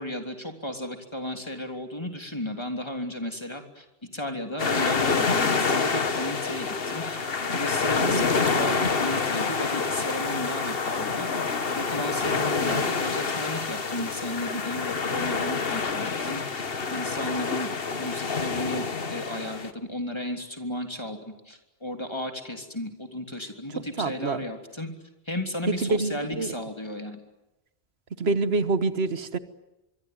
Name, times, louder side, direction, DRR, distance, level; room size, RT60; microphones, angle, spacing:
voice 1, 0.0-3.9 4.1-11.3 11.7-17.7 18.0-24.9 25.2-27.2, left 1 dB, 25° left, 4 dB, 3.4 m, -34 dB
sound 1, 4.6-19.7, left 4 dB, 65° left, 1.6 m, -27 dB
voice 2, 23.7-24.4 25.8-26.5 28.2-29.4, right 3 dB, 85° right, 12 dB, 1.5 m, -26 dB
24.5 x 24.0 x 9.5 m, 0.97 s
omnidirectional pair, 1.0 m